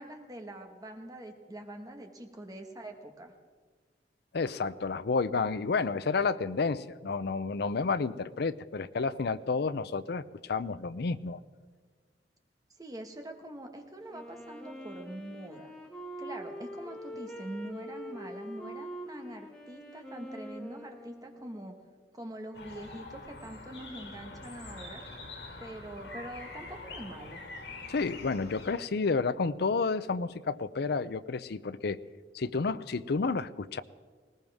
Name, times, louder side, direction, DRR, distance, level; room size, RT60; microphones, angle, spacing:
voice 1, 0.0-3.3 12.8-15.7 16.2-21.8 22.1-25.0 25.6-27.4, right 1 dB, 20° right, 4 dB, 1.5 m, -44 dB
voice 2, 4.3-11.4 27.9-32.0 32.3-33.8, left 4 dB, 65° left, 14 dB, 0.5 m, -30 dB
Wind instrument woodwind instrument, 14.1-21.8, right 1 dB, 5° left, 2.0 m, -44 dB
sound 1, 22.5-28.7, left 3 dB, 80° left, 3.4 m, -45 dB
20.0 x 19.0 x 3.6 m, 1.5 s
head